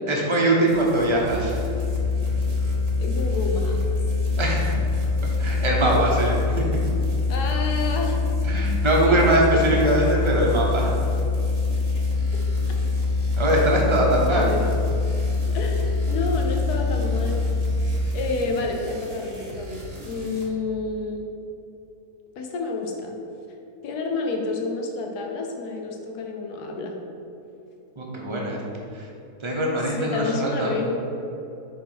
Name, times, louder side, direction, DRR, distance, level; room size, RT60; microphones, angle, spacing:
voice 1, 0.1-1.5 4.4-4.8 5.4-6.6 8.4-10.9 13.4-14.5 28.0-28.6 28.9-29.0 29.4-30.8, right 1 dB, 25° right, -2 dB, 0.7 m, -22 dB
sound 1, 0.7-20.5, right 2 dB, 45° right, 1.1 m, -39 dB
sound 2, 1.3-17.8, left 4 dB, 75° right, 1.2 m, -24 dB
voice 2, 3.0-3.8 5.8-6.0 7.3-8.2 8.7-10.0 12.3-12.8 14.3-14.7 15.5-17.4 18.1-21.2 22.4-23.2 23.8-26.9 29.7-30.9, left 3 dB, 75° left, 1 dB, 1.3 m, -29 dB
5.5 x 3.7 x 5.9 m, 2.8 s
omnidirectional pair, 1.7 m